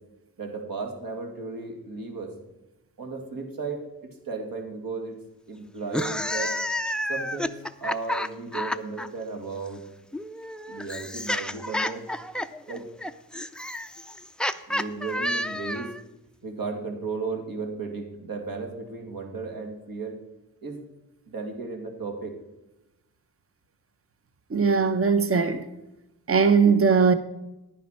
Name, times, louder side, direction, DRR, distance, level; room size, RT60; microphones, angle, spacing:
voice 1, 0.4-2.4 3.0-5.2 5.5-6.5 7.1-7.5 7.8-9.8 10.7-12.1 12.7-12.9 14.7-15.9 16.4-20.2 20.6-20.8 21.3-22.4, right 4 dB, 70° right, 2.4 m, -34 dB
sound 1, 5.8-9.1 10.1-16.0, left 1 dB, ahead, 0.4 m, -30 dB
voice 2, 24.5-25.7 26.3-27.1, right 5 dB, 35° right, 0.9 m, -20 dB
10.5 x 9.9 x 4.3 m
wide cardioid pair, 115°, 37 cm